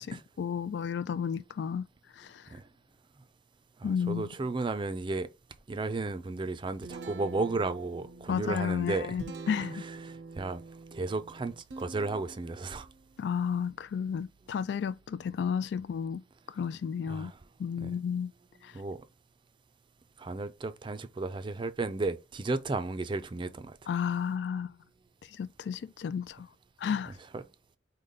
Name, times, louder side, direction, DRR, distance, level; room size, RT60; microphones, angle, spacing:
voice 1, 0.0-1.9 2.2-2.5 3.8-4.3 8.3-9.8 13.2-17.3 17.6-18.3 18.6-18.7 23.9-24.8 25.3-26.5 26.8-27.1, left 7 dB, 75° left, 0.3 m, -32 dB
voice 2, 3.8-5.3 5.7-9.2 10.0-10.6 10.9-12.9 17.1-17.4 17.8-17.9 18.7-19.0 20.2-23.8 27.3-27.4, right 3 dB, 30° right, 0.4 m, -34 dB
Guitar, 6.4-16.1, right 3 dB, 80° right, 0.5 m, -48 dB
4.9 x 2.2 x 3.8 m
head